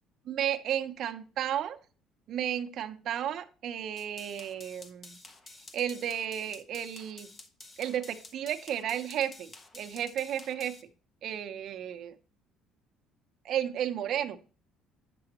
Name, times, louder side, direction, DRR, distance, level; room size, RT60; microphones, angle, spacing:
voice 1, 0.3-1.8 2.3-5.2 5.7-7.3 7.8-10.8 11.2-12.1 13.4-14.4, right 10 dB, 50° right, 7 dB, 0.7 m, -33 dB
sound 1, 4.0-10.8, left 2 dB, 25° left, 0.8 m, -51 dB
8.6 x 6.9 x 2.9 m, 0.38 s
cardioid pair, 150°, 0 cm